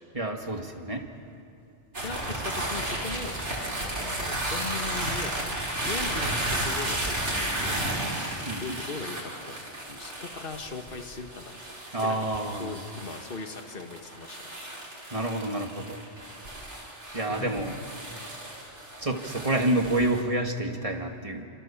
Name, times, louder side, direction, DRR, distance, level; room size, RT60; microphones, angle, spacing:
voice 1, 0.1-1.1 8.5-8.8 11.9-12.8 15.1-16.0 17.1-17.7 19.0-21.4, right 1 dB, 30° right, 3 dB, 2.2 m, -28 dB
sound 1, 1.9-20.2, right 1 dB, 80° right, 4.7 m, -33 dB
voice 2, 2.0-3.4 3.8-5.6 5.8-8.2 8.6-9.5 9.9-11.6 12.0-14.6 17.3-17.5, left 4 dB, 50° left, 5 dB, 1.8 m, -39 dB
27.0 x 26.5 x 7.3 m, 2.8 s
omnidirectional pair, 1.2 m